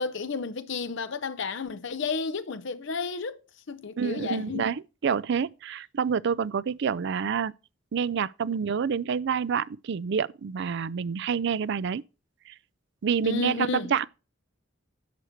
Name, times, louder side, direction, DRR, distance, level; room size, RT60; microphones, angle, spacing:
voice 1, 0.0-3.4 3.7-4.7 13.2-14.0, left 4 dB, 65° left, 0.7 m, -32 dB
voice 2, 4.0-7.5 7.9-12.0 13.0-14.1, right 6 dB, 60° right, 0.4 m, -28 dB
11.0 x 6.5 x 4.4 m
head